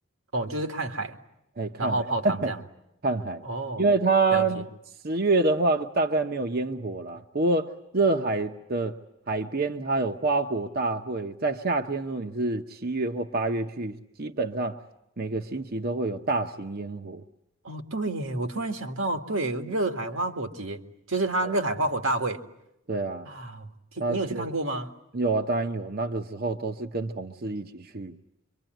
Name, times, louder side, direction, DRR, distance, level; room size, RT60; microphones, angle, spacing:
voice 1, 0.3-1.1 1.8-2.6 3.4-3.8 4.3-4.6 17.6-20.8 21.1-22.4 23.3-23.7 24.0-24.9, right 2 dB, 85° right, 5 dB, 2.2 m, -29 dB
voice 2, 1.6-2.5 3.0-3.4 3.8-4.6 5.0-9.0 9.3-14.8 15.2-17.2 21.4-21.6 22.9-23.3 24.0-24.5 25.1-28.2, right 3 dB, 50° right, 5 dB, 1.0 m, -27 dB
26.0 x 24.5 x 9.2 m, 0.82 s
head